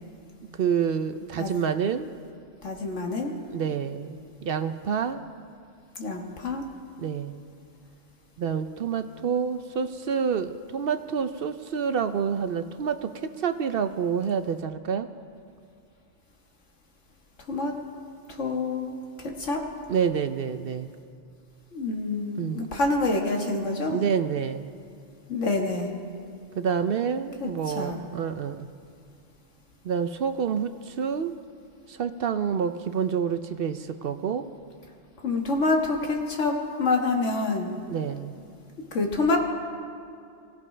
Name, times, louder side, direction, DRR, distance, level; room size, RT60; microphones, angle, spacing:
voice 1, 0.6-2.1 3.5-5.2 7.0-7.4 8.4-15.1 19.9-20.9 22.4-22.7 23.8-24.7 26.6-28.7 29.8-31.3 31.9-34.5 37.9-38.3, right 7 dB, 60° right, 10 dB, 0.7 m, -28 dB
voice 2, 2.6-3.3 6.0-6.7 17.5-17.7 18.3-19.6 21.7-24.0 25.3-25.9 27.4-28.0 35.2-37.8 38.9-39.4, left 3 dB, 85° left, 1 dB, 1.9 m, -27 dB
24.5 x 15.5 x 3.3 m, 2.4 s
omnidirectional pair, 1.2 m